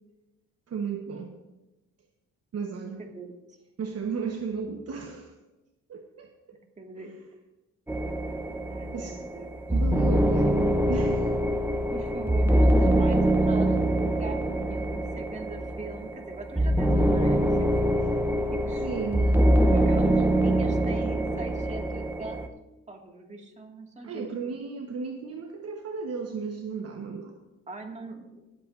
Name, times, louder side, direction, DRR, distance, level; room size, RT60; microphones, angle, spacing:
voice 1, 0.7-1.3 2.5-3.1 3.8-5.3 5.9-6.3 8.9-9.2 9.7-11.5 18.7-20.1 24.0-27.3, right 5 dB, 55° right, 3 dB, 1.2 m, -34 dB
voice 2, 2.7-3.3 6.8-7.1 8.7-9.6 11.9-17.5 18.5-18.9 19.4-22.4 22.9-24.5 27.7-28.4, right 3 dB, 25° right, 1 dB, 2.1 m, -40 dB
sound 1, 7.9-22.5, right 1 dB, 5° right, 0.9 m, -24 dB
24.0 x 8.2 x 2.6 m, 1.1 s
cardioid pair, 90°, 30 cm